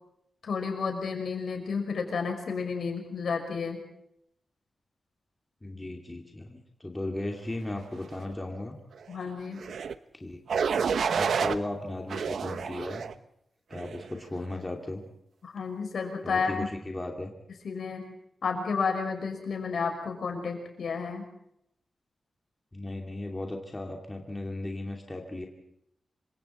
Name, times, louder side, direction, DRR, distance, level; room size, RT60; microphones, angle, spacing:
voice 1, 0.4-3.8 9.1-9.6 15.4-16.7 17.6-18.0 18.4-21.3, left 5 dB, 70° left, 4 dB, 5.8 m, -31 dB
voice 2, 5.6-8.7 10.1-10.4 11.2-13.0 13.7-15.0 16.2-17.3 22.7-25.5, left 2 dB, 15° left, 1 dB, 2.6 m, -36 dB
sound 1, 9.6-9.9 10.5-11.6 12.1-13.1 13.7-14.1, right 6 dB, 85° right, 0.9 m, -29 dB
27.5 x 25.0 x 4.4 m, 0.74 s
wide cardioid pair, 160°, 0 cm